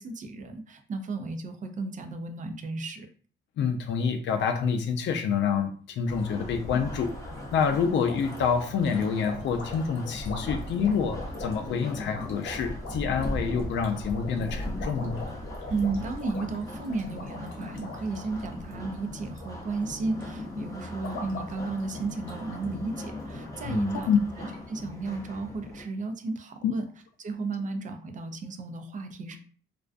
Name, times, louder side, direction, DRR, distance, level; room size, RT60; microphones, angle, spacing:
voice 1, 0.0-3.1 15.7-24.1 24.7-26.9 27.2-29.4, right 3 dB, 40° right, 7 dB, 0.4 m, -33 dB
voice 2, 3.6-7.1 7.5-15.2 23.6-24.2 26.6-26.7, left 6 dB, 65° left, 6 dB, 0.4 m, -27 dB
sound 1, 6.1-25.8, left 1 dB, 15° left, 0.7 m, -38 dB
sound 2, 6.8-19.5 19.8-20.2 20.7-22.6 22.9-23.0 23.4-23.5 24.0-24.1 24.4-24.6, left 2 dB, 85° left, 0.9 m, -44 dB
2.4 x 2.2 x 2.4 m, 0.43 s
cardioid pair, 90°, 20 cm